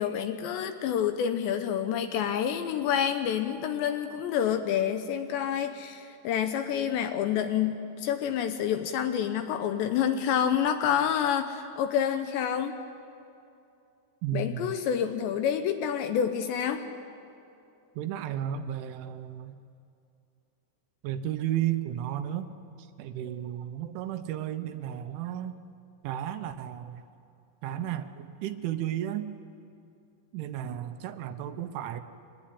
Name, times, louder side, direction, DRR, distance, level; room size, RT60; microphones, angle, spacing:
voice 1, 0.0-12.8 14.3-16.9, left 9 dB, 75° left, 8 dB, 2.8 m, -28 dB
voice 2, 14.2-14.8 18.0-19.6 21.0-22.5 22.8-25.6 26.0-27.0 27.6-29.3 30.3-32.0, right 11 dB, 80° right, 9 dB, 3.1 m, -33 dB
24.5 x 19.0 x 9.9 m, 2.6 s
omnidirectional pair, 5.7 m